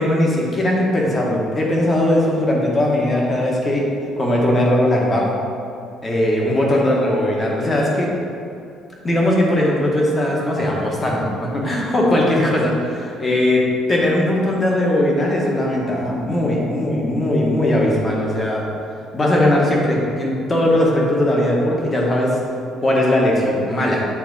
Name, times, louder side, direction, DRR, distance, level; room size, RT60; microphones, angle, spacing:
voice 1, 0.0-3.8 4.2-5.4 6.0-8.1 9.0-13.6 13.9-18.7 19.1-22.4 22.8-24.0, left 1 dB, 20° left, -2 dB, 1.1 m, -19 dB
8.4 x 4.0 x 4.0 m, 2.5 s
cardioid pair, 155°, 0 cm